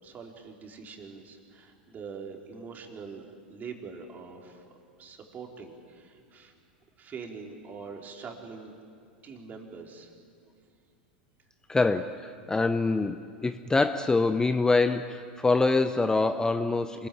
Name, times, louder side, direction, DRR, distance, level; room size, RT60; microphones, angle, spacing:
voice 1, 0.0-4.6 5.0-6.5 7.0-8.7 9.2-10.1, right 5 dB, 30° right, 2 dB, 4.0 m, -43 dB
voice 2, 11.7-17.1, left 3 dB, 10° left, 11 dB, 0.8 m, -25 dB
26.5 x 20.5 x 8.7 m, 2.3 s
hypercardioid pair, 90°, 5 cm